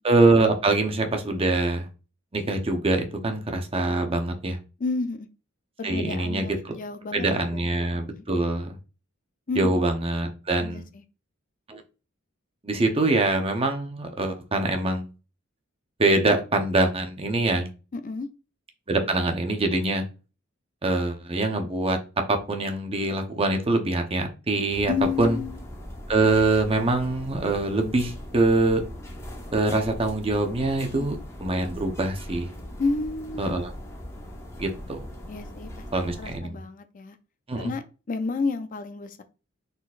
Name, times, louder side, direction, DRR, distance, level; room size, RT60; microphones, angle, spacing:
voice 1, 0.0-1.9 2.3-4.6 5.8-6.4 7.1-8.8 9.6-10.9 11.7-11.8 12.6-15.1 16.0-17.7 18.9-20.0 20.8-22.0 22.3-24.9 25.2-25.4 26.1-28.8 29.5-32.5 33.4-33.7 34.6-35.0 35.9-36.6 37.5-37.7, right 2 dB, 25° right, 4 dB, 0.8 m, -24 dB
voice 2, 4.8-5.3 5.8-7.3 7.5-7.7 8.2-8.3 9.5-9.8 10.6-11.0 17.9-18.3 24.9-25.6 32.8-33.4 35.3-35.8 36.2-37.2 37.6-39.2, left 4 dB, 40° left, 10 dB, 0.4 m, -30 dB
sound 1, 24.7-36.4, equal, 15° left, 0.8 m, -40 dB
4.3 x 3.9 x 2.4 m, 0.32 s
head